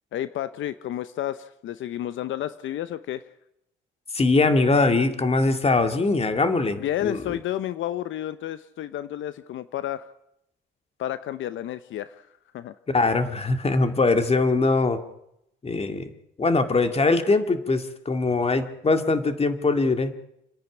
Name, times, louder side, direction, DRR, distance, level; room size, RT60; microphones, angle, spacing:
voice 1, 0.1-3.2 6.8-10.1 11.0-12.3 12.5-12.7, left 12 dB, 75° left, 13 dB, 0.8 m, -31 dB
voice 2, 4.1-7.2 12.9-15.0 15.6-16.1 16.4-20.1, left 3 dB, 30° left, 8 dB, 2.2 m, -22 dB
29.0 x 10.5 x 9.9 m, 0.80 s
cardioid pair, 90°, 20 cm